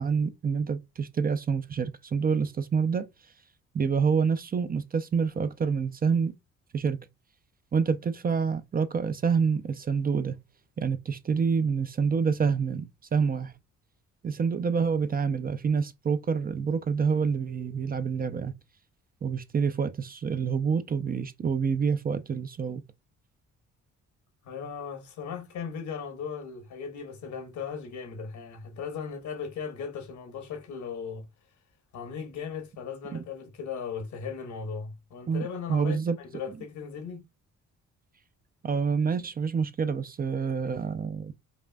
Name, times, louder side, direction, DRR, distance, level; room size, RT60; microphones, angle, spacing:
voice 1, 0.0-3.1 3.7-6.3 6.7-7.0 7.7-10.4 10.8-13.5 14.2-18.5 19.2-22.8 33.1-33.2 35.3-35.4 35.7-36.2 38.6-41.3, right 6 dB, 30° right, 0.5 m, -27 dB
voice 2, 24.4-31.3 31.9-36.0 36.3-37.2, left 6 dB, 75° left, 1.4 m, -37 dB
5.4 x 2.4 x 2.3 m
cardioid pair, 90°, 30 cm